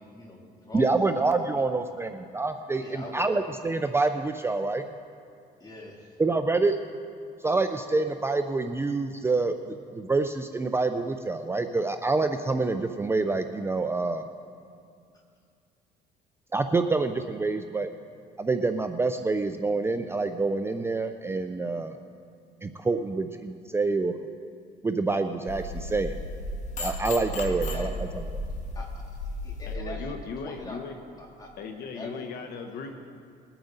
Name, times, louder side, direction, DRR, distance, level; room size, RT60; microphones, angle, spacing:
voice 1, 0.0-1.6 2.8-3.4 5.6-6.1 27.5-28.1 28.7-28.9 29.4-30.1 30.4-30.8 31.2-31.5 31.9-32.3, left 2 dB, 25° left, -2 dB, 2.8 m, -42 dB
voice 2, 0.7-4.8 6.2-6.8 7.4-14.3 16.5-17.9 18.4-22.0 22.6-24.1 24.8-26.1 26.8-28.2, right 3 dB, 15° right, 7 dB, 0.5 m, -27 dB
sound 1, 25.5-29.8, left 1 dB, 45° left, 1.7 m, -34 dB
voice 3, 29.7-31.0 31.6-32.9, left 5 dB, 70° left, 5 dB, 1.0 m, -37 dB
21.0 x 8.8 x 4.0 m, 2.3 s
cardioid pair, 110°, 17 cm